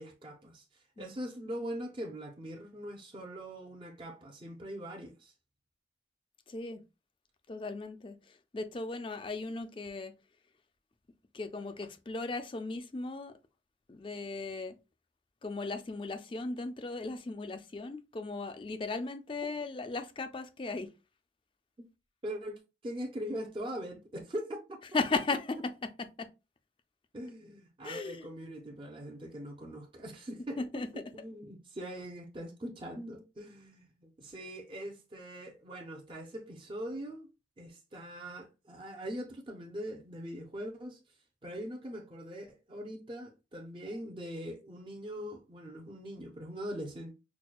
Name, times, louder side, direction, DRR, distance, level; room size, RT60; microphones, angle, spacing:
voice 1, 0.0-5.3 21.8-21.9 22.2-24.8 27.1-30.6 30.9-37.3 37.6-41.0 41.4-47.1, equal, 30° right, 0.6 m, -42 dB
voice 2, 6.5-6.8 7.5-10.1 11.3-13.3 13.9-14.7 15.4-20.9 24.9-26.3 27.8-28.3 30.6-30.9, left 3 dB, 30° left, 0.4 m, -37 dB
5.9 x 2.2 x 2.3 m
head